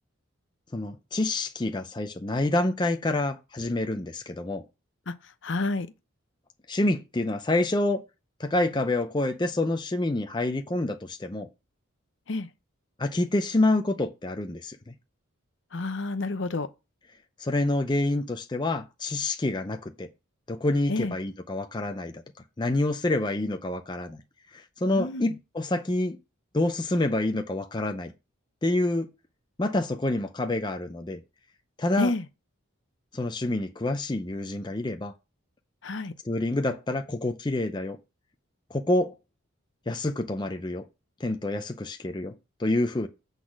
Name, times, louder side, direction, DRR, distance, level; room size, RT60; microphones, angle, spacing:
voice 1, 0.7-4.6 6.7-8.0 8.4-11.5 13.0-14.9 17.4-20.1 20.5-22.1 22.6-24.2 24.5-26.2 26.5-28.1 28.6-29.1 29.6-31.2 31.8-32.1 33.1-35.1 36.2-38.0 38.7-39.1 39.9-40.8 41.2-43.1, left 2 dB, 20° left, 0.5 m, -27 dB
voice 2, 5.4-5.9 12.3-12.5 15.7-16.7 20.9-21.1 24.9-25.3 32.0-32.2 35.8-36.1, left 2 dB, 60° left, 0.7 m, -29 dB
8.3 x 4.0 x 6.1 m
head